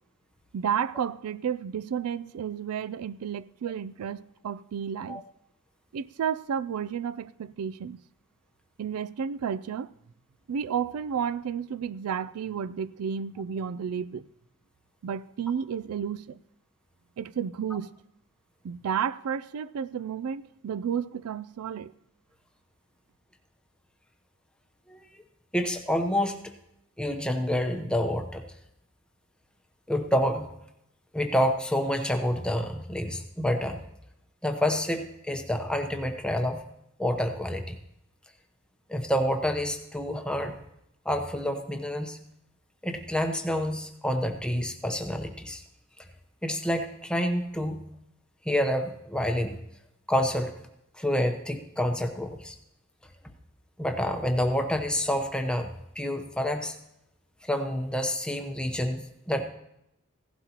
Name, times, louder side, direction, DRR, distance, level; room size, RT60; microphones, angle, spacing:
voice 1, 0.5-5.2 5.9-8.0 8.8-9.9 10.5-14.3 15.0-16.4 17.2-17.9 18.6-21.9, right 7 dB, 85° right, 0.4 m, -32 dB
voice 2, 24.9-25.2 25.5-26.4 27.0-28.4 29.9-30.5 31.1-33.8 34.4-36.6 37.0-37.8 38.9-40.6 41.0-42.2 42.8-45.6 46.4-47.8 48.4-49.6 50.1-50.5 51.0-52.6 53.8-55.7 56.0-56.8 57.4-59.4, equal, 5° left, 0.8 m, -28 dB
16.5 x 12.0 x 2.9 m
head